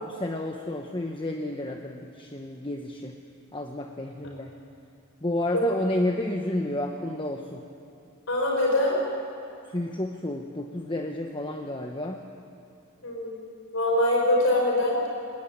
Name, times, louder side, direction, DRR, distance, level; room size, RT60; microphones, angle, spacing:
voice 1, 0.0-3.2 3.5-4.5 5.2-7.6 9.7-12.2, left 1 dB, 25° left, 3 dB, 1.1 m, -31 dB
voice 2, 8.3-9.0 13.0-13.4 13.7-15.0, left 1 dB, 70° left, -1 dB, 5.2 m, -23 dB
21.5 x 20.5 x 8.8 m, 2.7 s
head